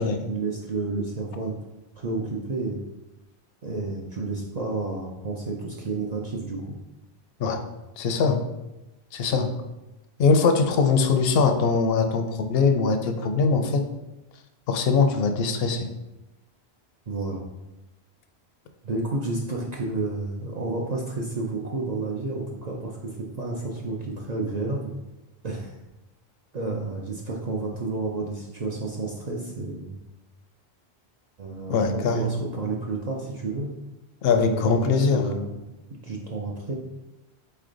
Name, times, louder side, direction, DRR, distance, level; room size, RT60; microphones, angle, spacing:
voice 1, 0.3-1.5 1.9-2.8 3.6-6.7 17.1-17.4 18.8-24.9 25.4-25.7 26.5-30.0 31.4-33.7 34.4-35.6 35.9-36.7, right 3 dB, 50° right, -2 dB, 0.6 m, -31 dB
voice 2, 8.0-8.4 9.1-9.5 10.2-13.9 14.7-15.9 31.7-32.5 34.2-35.2, left 4 dB, 70° left, 7 dB, 0.7 m, -22 dB
4.1 x 3.3 x 3.8 m, 0.99 s
omnidirectional pair, 1.1 m